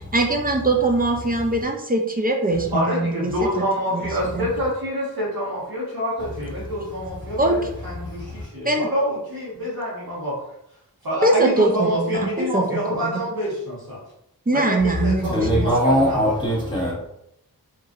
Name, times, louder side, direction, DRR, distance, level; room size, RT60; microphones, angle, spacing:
voice 1, 0.1-3.3 3.9-4.0 4.3-4.5 7.4-7.6 8.6-8.9 11.2-13.1 14.5-15.7, right 2 dB, 25° right, 2 dB, 0.4 m, -22 dB
voice 2, 2.7-10.3 11.0-14.0 14.5-16.6, equal, 75° right, -7 dB, 1.4 m, -27 dB
voice 3, 8.0-8.5 15.2-16.9, equal, 15° left, -6 dB, 1.4 m, -22 dB
2.9 x 2.5 x 2.5 m, 0.78 s
wide cardioid pair, 40°, 37 cm